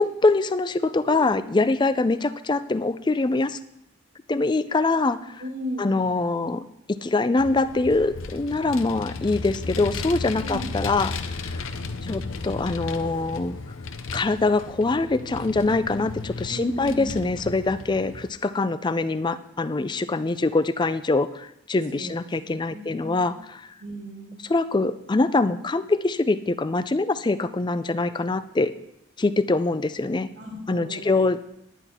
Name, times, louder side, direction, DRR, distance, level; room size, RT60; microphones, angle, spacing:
voice 1, 0.0-3.6 4.3-5.4 5.8-6.6 7.0-11.7 12.0-13.6 14.1-23.7 24.5-28.7 29.2-30.3 30.7-31.4, left 3 dB, 20° left, 13 dB, 0.4 m, -24 dB
voice 2, 1.0-1.4 5.4-5.9 10.4-10.7 16.5-17.2 21.9-22.1 22.7-23.3 23.8-24.4 30.4-31.1, right 1 dB, 80° right, -1 dB, 2.1 m, -35 dB
Vehicle, 7.4-18.3, left 3 dB, 75° left, 0.7 m, -34 dB
11.0 x 10.0 x 4.3 m, 0.80 s
head